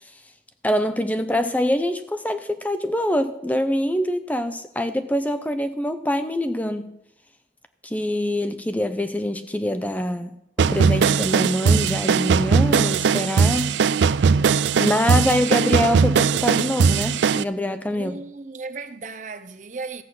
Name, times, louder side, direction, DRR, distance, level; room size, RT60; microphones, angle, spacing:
voice 1, 0.6-6.9 7.8-13.7 14.8-18.2, left 1 dB, 10° left, 0.5 m, -24 dB
sound 1, 10.6-17.4, right 6 dB, 90° right, 0.4 m, -19 dB
voice 2, 17.9-20.0, right 4 dB, 45° right, 0.7 m, -35 dB
14.0 x 7.9 x 5.9 m
head